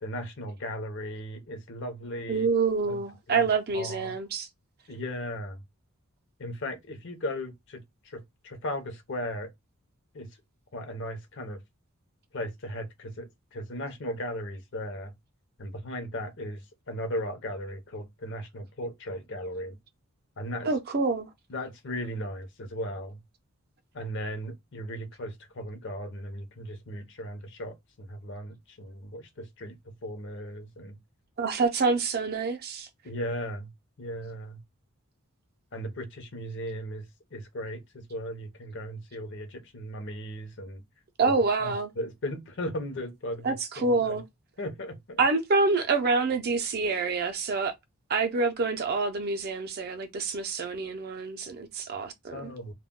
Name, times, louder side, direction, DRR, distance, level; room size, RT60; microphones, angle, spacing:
voice 1, 0.0-2.5 2.9-3.0 3.3-4.2 4.9-5.6 6.4-9.5 10.1-10.3 10.7-11.6 12.3-15.1 15.6-19.8 20.4-20.7 21.5-23.2 23.9-31.0 33.0-33.7 34.0-34.6 35.7-40.8 41.2-41.3 41.6-44.2 44.6-45.2 52.3-52.7, equal, 55° left, 0.6 m, -37 dB
voice 2, 2.3-4.5 20.6-21.3 31.4-32.9 41.2-41.9 43.4-44.2 45.2-47.7 48.1-52.5, right 4 dB, 45° right, 0.5 m, -27 dB
2.2 x 2.1 x 3.6 m
head